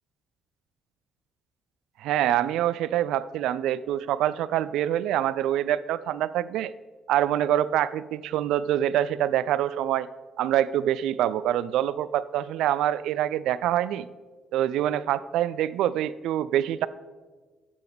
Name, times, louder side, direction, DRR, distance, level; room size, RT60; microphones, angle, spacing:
voice 1, 2.0-6.7 7.1-10.1 10.4-14.1 14.5-16.9, right 11 dB, 60° right, 16 dB, 0.3 m, -25 dB
12.0 x 7.0 x 4.7 m, 1.3 s
figure-of-eight pair, 40°, 0 cm